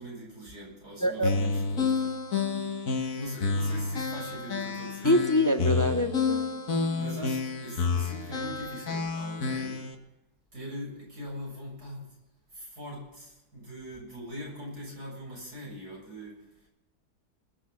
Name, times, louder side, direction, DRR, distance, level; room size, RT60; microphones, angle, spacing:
voice 1, 0.0-2.2 3.0-5.2 6.9-9.9 10.5-12.2 12.5-16.7, equal, 75° right, -4 dB, 7.8 m, -42 dB
voice 2, 1.0-1.3 5.0-6.5, left 1 dB, 20° left, 7 dB, 0.4 m, -25 dB
sound 1, 1.2-9.9, left 4 dB, 60° left, 1.9 m, -30 dB
21.0 x 7.2 x 7.1 m, 0.93 s
omnidirectional pair, 1.7 m